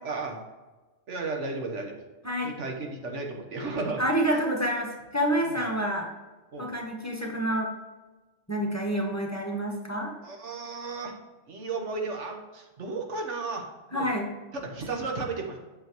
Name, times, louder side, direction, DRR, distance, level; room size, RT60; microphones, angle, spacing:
voice 1, 0.0-0.4 1.1-2.0 2.4-4.0 5.4-5.6 6.5-6.7 10.2-11.1 11.5-14.1 14.5-15.6, right 3 dB, 85° right, 2 dB, 1.5 m, -34 dB
voice 2, 4.0-6.1 6.6-7.7 8.5-10.1 13.9-14.3, equal, 15° left, 0 dB, 0.9 m, -28 dB
8.1 x 6.3 x 3.0 m, 1.2 s
omnidirectional pair, 1.2 m